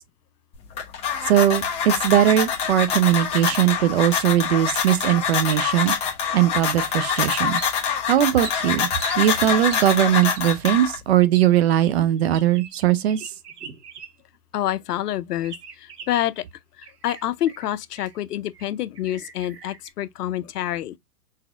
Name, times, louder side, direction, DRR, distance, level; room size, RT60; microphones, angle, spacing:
sound 1, 0.5-11.2, left 7 dB, 15° left, 0.8 m, -25 dB
voice 1, 1.3-5.9 6.3-7.6 8.1-8.9 9.2-13.2, right 12 dB, 45° right, 0.6 m, -20 dB
sound 2, 7.5-8.0 8.4-9.2 9.7-9.9 10.3-10.5 11.3-11.5 11.8-14.4 14.6-14.7 15.4-16.4 16.8-18.2 18.5-18.7 18.9-19.9, right 6 dB, 85° right, 1.2 m, -40 dB
voice 2, 14.5-16.4 16.8-21.0, left 12 dB, 80° left, 0.6 m, -27 dB
4.1 x 4.1 x 2.4 m
hypercardioid pair, 150°, 46 cm